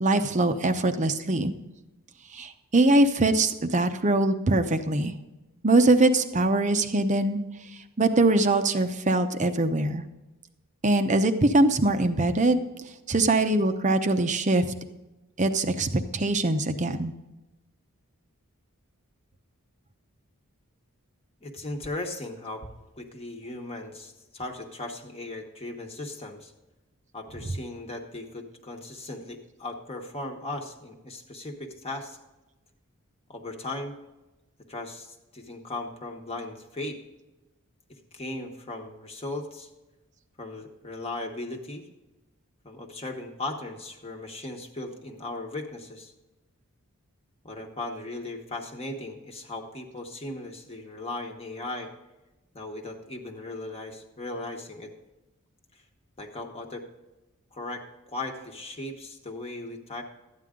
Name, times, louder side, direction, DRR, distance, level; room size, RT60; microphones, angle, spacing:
voice 1, 0.0-1.5 2.3-5.1 5.6-7.4 8.0-10.0 10.8-12.6 13.1-14.7 15.4-17.1, right 2 dB, 35° right, 8 dB, 0.8 m, -22 dB
voice 2, 21.4-22.7 23.0-26.5 27.1-32.2 33.3-33.9 34.7-37.0 37.9-39.7 40.4-41.9 42.6-46.1 47.4-51.9 52.5-54.9 56.2-56.8 57.5-60.0, left 2 dB, 25° left, 2 dB, 1.2 m, -37 dB
13.0 x 9.4 x 3.7 m, 1.0 s
head